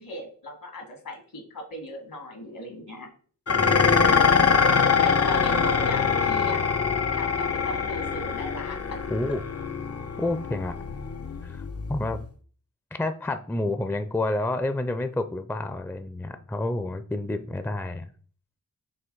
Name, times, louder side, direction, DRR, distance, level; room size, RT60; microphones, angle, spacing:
voice 1, 0.0-3.1 5.0-6.6 7.1-8.8, left 1 dB, 70° left, 3 dB, 2.0 m, -37 dB
Dishes pots and pans, 3.5-12.3, left 5 dB, 45° left, 0.7 m, -24 dB
voice 2, 3.5-4.2 9.1-9.4 10.2-10.7 11.4-11.6 11.9-12.2 12.9-18.1, left 2 dB, 5° left, 10 dB, 0.5 m, -29 dB
5.7 x 3.0 x 5.4 m, 0.44 s
cardioid pair, 40°, 35 cm